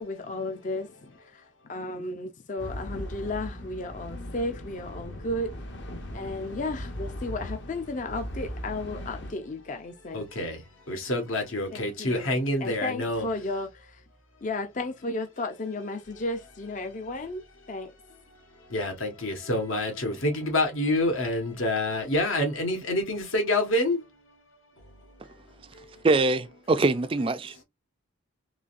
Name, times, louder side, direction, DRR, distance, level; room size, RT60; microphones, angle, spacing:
voice 1, 0.0-5.5 6.1-10.6 11.7-14.0 14.4-17.9, left 2 dB, 35° left, 0.4 m, -34 dB
sound 1, 2.6-9.3, left 1 dB, 60° left, 1.0 m, -38 dB
voice 2, 10.1-10.6 10.9-13.3 18.7-24.4 24.8-26.0, left 1 dB, 80° left, 1.5 m, -28 dB
voice 3, 26.0-27.6, right 3 dB, 25° right, 0.3 m, -23 dB
3.9 x 3.2 x 2.5 m
head